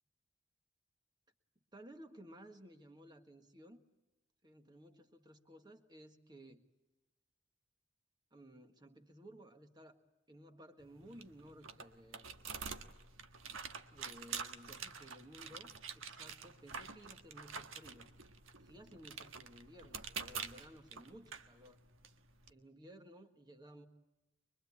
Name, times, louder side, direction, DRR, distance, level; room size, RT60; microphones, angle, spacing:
voice 1, 1.7-3.8 4.4-6.6 8.3-10.0 10.3-12.5 13.9-18.1 18.6-21.8 22.5-23.9, equal, 20° right, 5 dB, 1.6 m, -57 dB
sound 1, 10.8-22.5, right 6 dB, 85° right, 1.5 m, -48 dB
25.0 x 22.5 x 8.5 m, 1.0 s
head